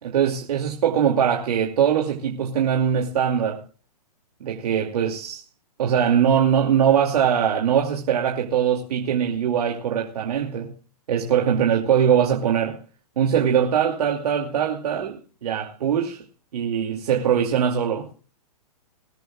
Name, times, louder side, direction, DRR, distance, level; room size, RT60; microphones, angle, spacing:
voice 1, 0.0-3.6 4.4-5.4 5.8-10.7 11.1-12.8 13.2-16.2 16.5-18.1, right 8 dB, 70° right, 2.7 m, -22 dB
21.0 x 13.5 x 2.4 m
hypercardioid pair, 150°, 21 cm